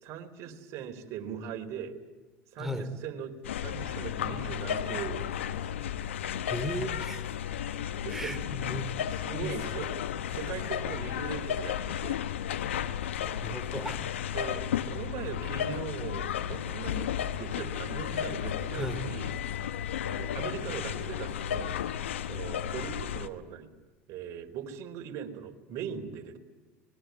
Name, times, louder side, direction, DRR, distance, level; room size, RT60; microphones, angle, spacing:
voice 1, 0.0-1.9 2.5-5.9 8.0-8.3 9.1-9.9 10.3-12.2 14.3-21.7 22.3-23.7 24.1-26.4, right 8 dB, 55° right, 5 dB, 4.1 m, -40 dB
voice 2, 2.6-2.9 6.5-7.3 8.1-8.9 9.4-9.5 13.2-14.1 18.7-19.0, equal, 5° right, 7 dB, 3.7 m, -36 dB
sound 1, 3.4-23.3, left 9 dB, 90° left, 1.2 m, -33 dB
25.5 x 21.5 x 9.5 m, 1.2 s
hypercardioid pair, 90°, 6 cm